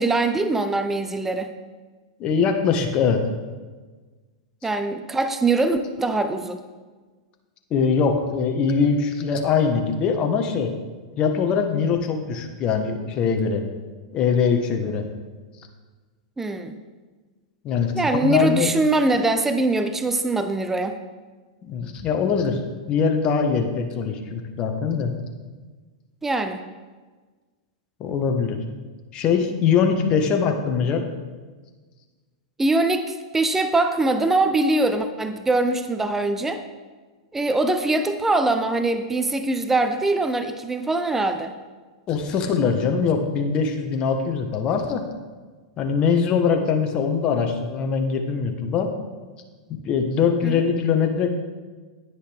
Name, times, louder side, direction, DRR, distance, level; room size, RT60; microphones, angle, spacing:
voice 1, 0.0-1.5 4.6-6.6 16.4-16.8 17.9-21.0 26.2-26.6 32.6-36.6 37.3-41.5 50.4-50.6, right 2 dB, 10° right, 9 dB, 0.7 m, -22 dB
voice 2, 2.2-3.3 7.7-10.7 11.2-13.6 14.1-15.1 17.6-18.7 21.6-22.6 22.9-25.1 28.0-28.6 29.1-31.1 42.1-45.0 45.8-48.9 49.8-51.3, left 6 dB, 35° left, 4 dB, 1.4 m, -22 dB
10.5 x 9.9 x 3.5 m, 1.4 s
hypercardioid pair, 105°, 3 cm